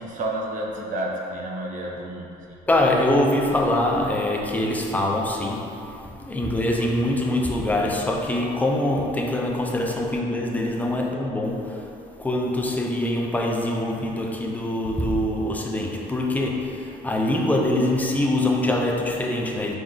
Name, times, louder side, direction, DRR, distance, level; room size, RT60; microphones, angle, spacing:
voice 1, 0.0-2.6, right 1 dB, 50° right, -2 dB, 0.7 m, -30 dB
voice 2, 2.7-11.9 12.2-19.7, left 1 dB, 10° left, 0 dB, 0.4 m, -24 dB
5.1 x 3.7 x 2.4 m, 2.7 s
cardioid pair, 110°, 17 cm